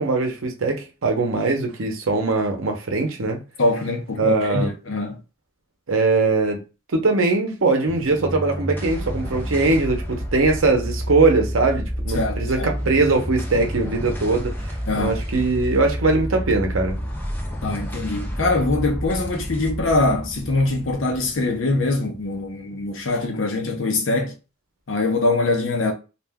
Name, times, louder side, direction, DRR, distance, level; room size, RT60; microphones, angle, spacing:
voice 1, 0.0-3.4 4.2-4.7 5.9-6.6 6.9-14.5 15.0-17.0, right 3 dB, 75° right, 0.7 m, -21 dB
voice 2, 3.6-5.2 12.1-12.7 14.9-15.2 17.6-24.3 24.9-25.9, left 2 dB, 65° left, 0.7 m, -23 dB
sound 1, 7.9-22.5, equal, 10° left, 0.5 m, -30 dB
2.4 x 2.2 x 3.4 m
head